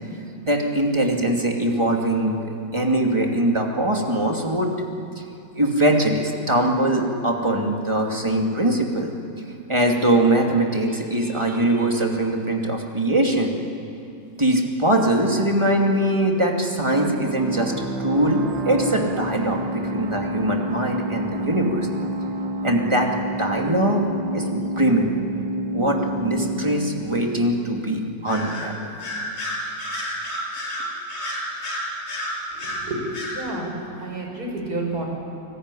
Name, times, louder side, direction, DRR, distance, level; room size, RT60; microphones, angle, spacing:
voice 1, 0.4-2.4 2.7-4.7 5.2-5.3 5.5-9.1 9.7-13.5 14.4-21.9 22.6-24.0 24.3-25.1 25.7-28.9, right 1 dB, 15° right, 1 dB, 2.6 m, -22 dB
sound 1, 16.9-28.3, right 1 dB, 85° right, 2.1 m, -29 dB
Bird vocalization bird call bird song, 28.3-28.7 29.0-32.8 33.1-33.4, left 1 dB, 65° left, 7.1 m, -30 dB
voice 2, 32.6-33.0 33.3-35.0, right 2 dB, 55° right, 1 dB, 6.1 m, -30 dB
29.5 x 19.5 x 10.0 m, 2.6 s
omnidirectional pair, 2.0 m